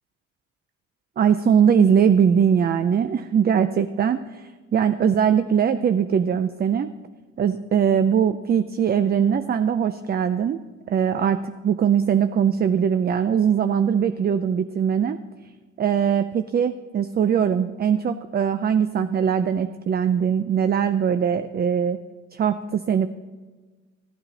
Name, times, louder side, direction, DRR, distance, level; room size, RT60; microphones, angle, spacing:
voice 1, 1.2-6.9 7.4-10.6 10.9-15.2 15.8-22.0 22.3-23.1, right 7 dB, 35° right, 11 dB, 0.4 m, -21 dB
15.0 x 8.7 x 4.0 m, 1.3 s
cardioid pair, 90°, 30 cm